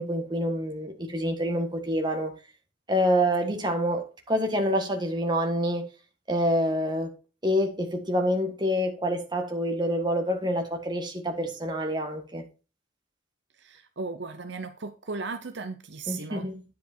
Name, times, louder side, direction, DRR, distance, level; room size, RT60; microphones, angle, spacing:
voice 1, 0.0-2.3 2.9-5.8 6.3-7.1 7.4-12.4 16.1-16.6, equal, 20° right, 1.6 m, -27 dB
voice 2, 13.6-16.5, right 4 dB, 60° right, 0.8 m, -36 dB
10.5 x 5.1 x 4.5 m
head